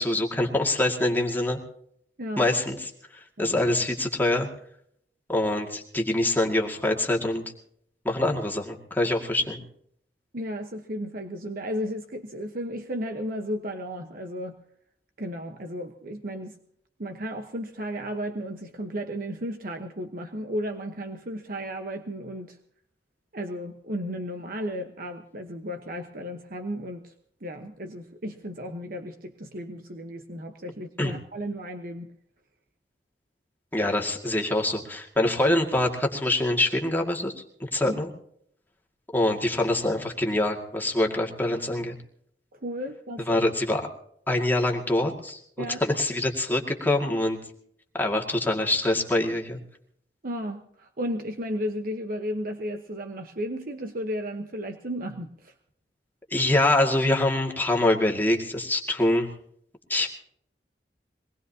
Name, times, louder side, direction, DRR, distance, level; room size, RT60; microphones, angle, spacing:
voice 1, 0.0-1.6 2.4-2.9 3.4-4.5 5.3-7.4 8.0-9.6 31.0-31.1 33.7-37.3 37.6-38.1 39.1-41.9 43.3-43.9 44.3-45.4 45.8-47.4 47.9-49.6 56.3-59.3 59.9-60.1, left 1 dB, 10° left, 0 dB, 2.1 m, -24 dB
voice 2, 10.3-14.6 15.2-16.6 17.0-22.6 23.3-27.1 27.4-32.1 37.8-38.0 42.6-43.4 45.6-45.8 50.2-55.5, equal, 55° right, 6 dB, 1.1 m, -34 dB
23.0 x 20.0 x 2.8 m, 0.68 s
head